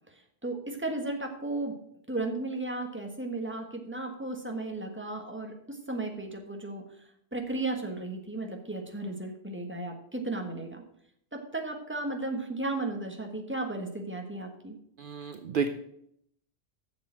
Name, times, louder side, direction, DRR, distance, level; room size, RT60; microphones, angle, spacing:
voice 1, 0.4-1.8 2.1-6.8 7.3-10.8 11.3-14.7, right 2 dB, 10° right, 2 dB, 1.5 m, -34 dB
voice 2, 15.0-15.7, right 5 dB, 60° right, 8 dB, 0.8 m, -31 dB
7.9 x 6.8 x 7.5 m, 0.72 s
omnidirectional pair, 1.0 m